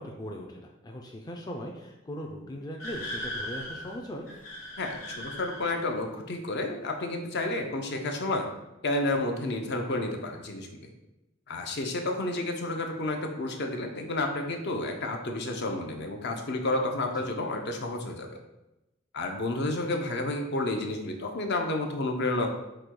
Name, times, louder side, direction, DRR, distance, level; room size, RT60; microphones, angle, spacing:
voice 1, 0.0-4.3 17.2-17.3, equal, 20° left, 1 dB, 0.4 m, -39 dB
sound 1, 2.8-6.0, left 1 dB, 85° left, 1.1 m, -38 dB
voice 2, 4.8-8.5 8.8-10.9 11.5-18.4 19.1-22.5, left 2 dB, 55° left, 3 dB, 0.6 m, -31 dB
5.0 x 2.2 x 4.5 m, 0.96 s
head